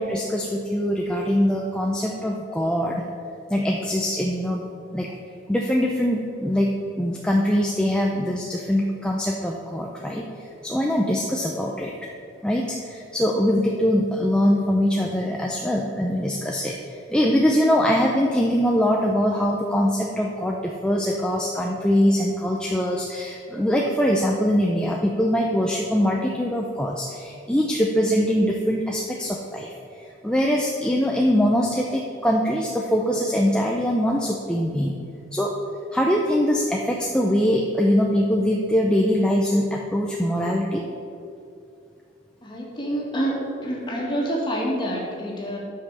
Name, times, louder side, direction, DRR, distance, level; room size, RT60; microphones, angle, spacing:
voice 1, 0.0-3.0 3.5-4.6 4.9-5.1 5.5-6.7 7.0-10.2 10.6-11.9 12.4-16.8 17.1-29.7 30.2-34.9 35.3-35.5 35.9-40.8, equal, 5° left, -1 dB, 0.6 m, -22 dB
voice 2, 42.4-45.6, right 1 dB, 25° left, -3 dB, 2.0 m, -27 dB
11.0 x 5.7 x 6.8 m, 2.6 s
head